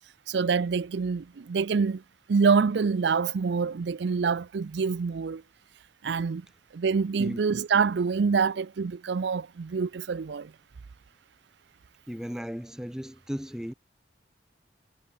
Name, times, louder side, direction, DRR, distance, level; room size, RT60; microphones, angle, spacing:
voice 1, 0.3-2.0 2.3-5.4 6.0-6.4 6.7-10.5, right 5 dB, 65° right, 0.4 m, -26 dB
voice 2, 12.1-13.7, equal, 5° right, 0.7 m, -35 dB
head